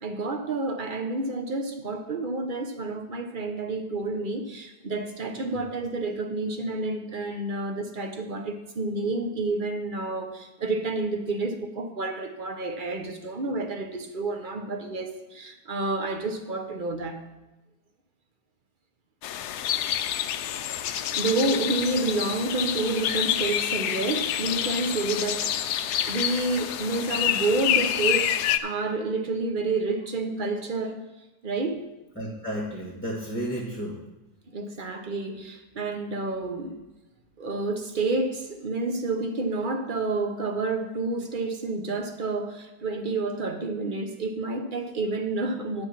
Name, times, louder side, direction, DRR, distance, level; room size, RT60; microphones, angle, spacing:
voice 1, 0.0-17.2 21.0-25.8 26.0-31.0 31.4-31.8 34.5-36.8 37.4-45.9, right 3 dB, 40° right, 6 dB, 0.9 m, -29 dB
sound 1, 19.2-28.6, left 11 dB, 90° left, 1.2 m, -27 dB
voice 2, 32.1-34.0, equal, 10° left, -2 dB, 1.3 m, -33 dB
9.8 x 6.6 x 5.8 m, 1.0 s
omnidirectional pair, 1.7 m